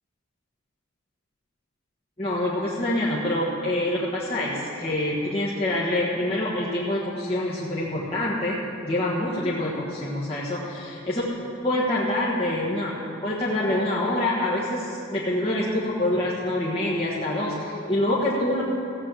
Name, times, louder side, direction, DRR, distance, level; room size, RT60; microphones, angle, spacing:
voice 1, 2.2-11.2 11.6-12.9 13.2-18.6, left 1 dB, 25° left, -7 dB, 1.4 m, -26 dB
15.5 x 7.4 x 7.7 m, 2.8 s
head